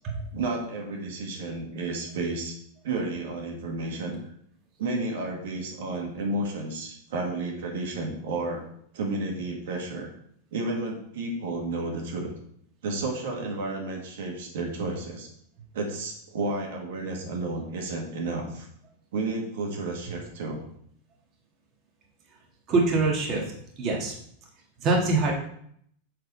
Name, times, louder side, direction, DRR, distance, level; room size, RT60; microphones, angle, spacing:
voice 1, 0.3-2.6 2.8-4.2 4.8-8.6 8.9-10.1 10.5-12.3 12.8-15.3 15.7-18.7 19.1-20.6, right 2 dB, 75° right, 1 dB, 1.8 m, -31 dB
voice 2, 22.7-23.5 23.8-24.1 24.8-25.3, right 3 dB, 35° right, 0 dB, 1.7 m, -24 dB
7.7 x 3.8 x 5.4 m, 0.67 s
supercardioid pair, 135°, 0 cm